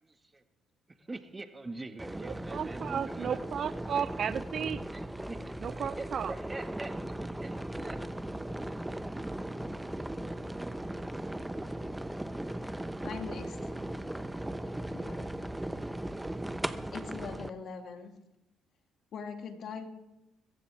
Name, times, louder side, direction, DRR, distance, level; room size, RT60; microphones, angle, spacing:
voice 1, 0.0-0.4 1.0-3.4 3.9-4.1 4.9-5.4 6.0-7.5 7.8-8.0, right 2 dB, 25° right, 7 dB, 1.8 m, -43 dB
sound 1, 2.0-17.5, right 1 dB, 10° right, 1.0 m, -38 dB
voice 2, 2.2-4.8 5.6-6.3, right 8 dB, 55° right, 16 dB, 0.7 m, -34 dB
voice 3, 13.0-13.7 14.9-15.3 16.9-18.1 19.1-19.9, left 5 dB, 60° left, 5 dB, 2.4 m, -41 dB
24.0 x 15.0 x 3.6 m, 0.94 s
hypercardioid pair, 55°, 0 cm